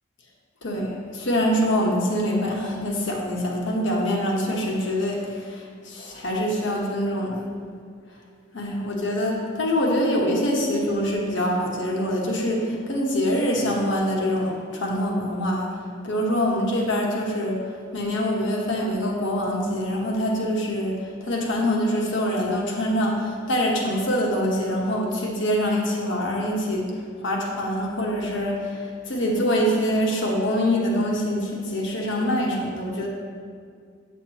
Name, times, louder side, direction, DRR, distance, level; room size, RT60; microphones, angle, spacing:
voice 1, 0.6-7.5 8.5-15.7 16.0-17.6 17.9-21.0 21.2-26.9 27.2-33.1, equal, 65° left, -1 dB, 1.2 m, -24 dB
8.0 x 7.3 x 3.0 m, 2.1 s
head